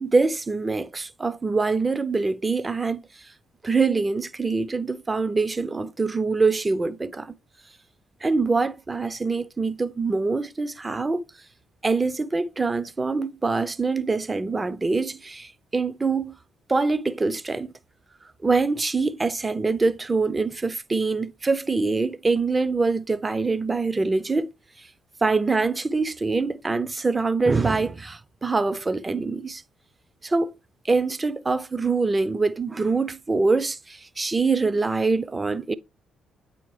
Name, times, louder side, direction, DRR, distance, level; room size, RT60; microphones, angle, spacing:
voice 1, 0.0-3.0 3.6-7.3 8.2-11.2 11.8-16.3 16.7-17.7 18.4-24.5 25.2-29.6 30.2-30.5 30.8-35.7, right 3 dB, 25° right, 0.5 m, -24 dB
8.7 x 4.2 x 3.2 m
hypercardioid pair, 45°, 0 cm